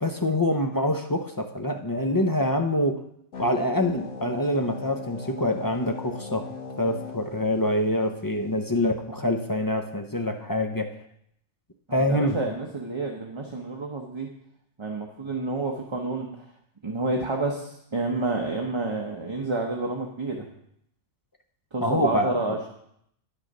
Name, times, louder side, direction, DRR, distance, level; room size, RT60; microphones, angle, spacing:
voice 1, 0.0-3.0 3.4-6.5 6.8-10.9 11.9-12.4 21.8-22.6, left 1 dB, 25° left, 5 dB, 0.4 m, -25 dB
sound 1, 3.3-8.3, left 4 dB, 85° left, 1.6 m, -39 dB
voice 2, 11.9-14.3 14.8-16.4 16.8-20.4 21.7-22.7, right 2 dB, 25° right, 0 dB, 0.8 m, -29 dB
9.9 x 6.4 x 5.3 m, 0.72 s
omnidirectional pair, 1.2 m